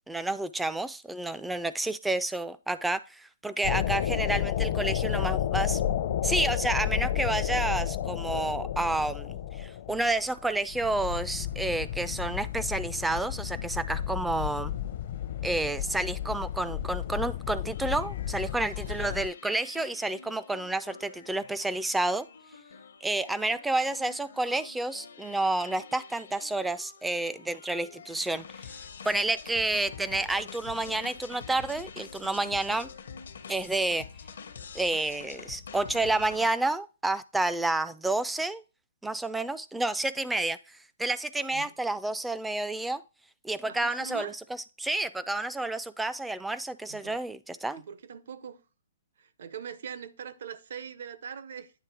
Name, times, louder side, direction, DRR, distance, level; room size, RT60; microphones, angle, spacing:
voice 1, 0.1-5.8 6.2-14.7 15.4-22.3 23.0-28.7 29.1-32.9 33.5-34.1 34.7-38.6 39.0-43.0 43.4-47.8, right 2 dB, 5° right, 0.3 m, -30 dB
sound 1, 3.6-19.3, left 11 dB, 50° left, 0.6 m, -32 dB
sound 2, 17.7-36.5, left 6 dB, 75° left, 0.9 m, -46 dB
voice 2, 18.8-19.2 41.5-41.7 43.7-44.4 46.9-47.2 47.8-48.6 49.2-51.7, right 7 dB, 65° right, 0.7 m, -42 dB
9.2 x 3.2 x 4.5 m
hypercardioid pair, 150°, 0 cm